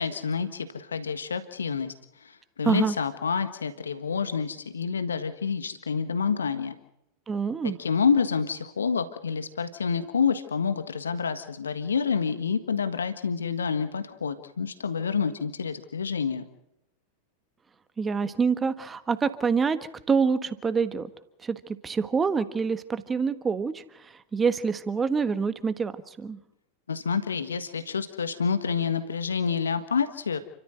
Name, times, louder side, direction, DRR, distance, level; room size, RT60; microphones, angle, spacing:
voice 1, 0.0-1.9 2.2-6.7 7.8-16.4 26.9-30.4, left 6 dB, 70° left, 11 dB, 1.5 m, -28 dB
voice 2, 2.6-3.0 7.3-7.8 18.0-19.8 20.1-21.1 21.4-23.8 24.3-25.9 26.2-26.4, right 5 dB, 15° right, 12 dB, 1.5 m, -26 dB
29.5 x 14.0 x 7.9 m, 0.83 s
figure-of-eight pair, 90°, 0 cm